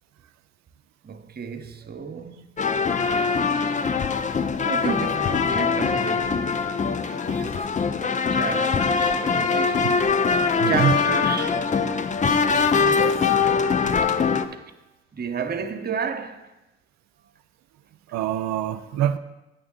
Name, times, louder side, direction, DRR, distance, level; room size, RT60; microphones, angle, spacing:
voice 1, 1.0-2.6 4.6-6.5 7.4-7.8 8.3-10.1 10.6-11.6 12.3-13.1 14.0-14.2 14.5-14.6 15.1-16.5, right 6 dB, 30° right, 0.9 m, -32 dB
sound 1, 2.6-14.5, left 5 dB, 25° left, 0.5 m, -22 dB
voice 2, 7.0-7.4 8.3-8.4 10.6-11.0 18.1-19.2, right 10 dB, 65° right, 0.5 m, -25 dB
8.7 x 7.0 x 3.7 m
hypercardioid pair, 55°, 30 cm